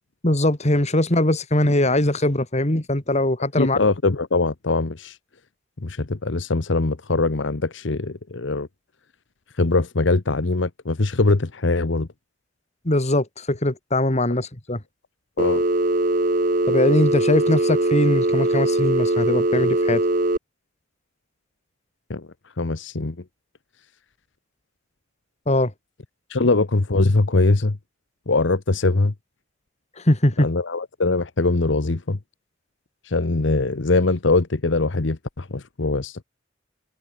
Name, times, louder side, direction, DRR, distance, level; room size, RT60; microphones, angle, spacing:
voice 1, 0.2-3.8 12.8-14.8 16.7-20.0 25.5-25.7 26.4-26.5 30.1-30.5, left 1 dB, 35° left, 2.7 m, -21 dB
voice 2, 3.6-5.2 5.8-8.7 9.6-12.1 14.3-14.4 15.4-15.6 22.1-22.3 22.6-23.2 26.3-27.8 28.3-29.1 30.4-32.2 33.0-36.2, left 3 dB, 70° left, 1.0 m, -22 dB
Telephone, 15.4-20.4, right 1 dB, 45° right, 2.2 m, -21 dB
head